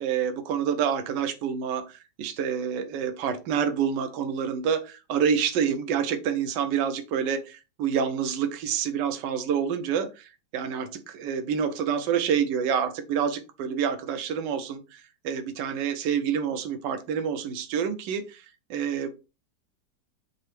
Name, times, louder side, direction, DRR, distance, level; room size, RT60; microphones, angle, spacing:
voice 1, 0.0-18.4 18.7-19.1, right 7 dB, 80° right, 1.2 m, -28 dB
5.4 x 2.0 x 3.1 m
omnidirectional pair, 1.9 m